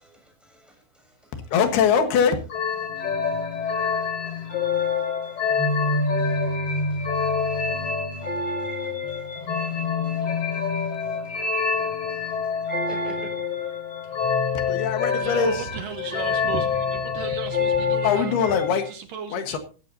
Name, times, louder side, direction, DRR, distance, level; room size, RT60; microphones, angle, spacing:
voice 1, 0.0-1.5 2.8-13.3, right 1 dB, ahead, 6.6 m, -52 dB
voice 2, 1.5-2.4 14.7-15.7 18.0-18.9 19.3-19.6, left 6 dB, 85° left, 3.4 m, -22 dB
sound 1, 2.5-18.9, left 5 dB, 40° left, 3.3 m, -26 dB
voice 3, 14.0-14.8 15.2-18.4 18.7-19.6, right 6 dB, 70° right, 2.5 m, -35 dB
15.5 x 15.0 x 2.7 m
omnidirectional pair, 4.5 m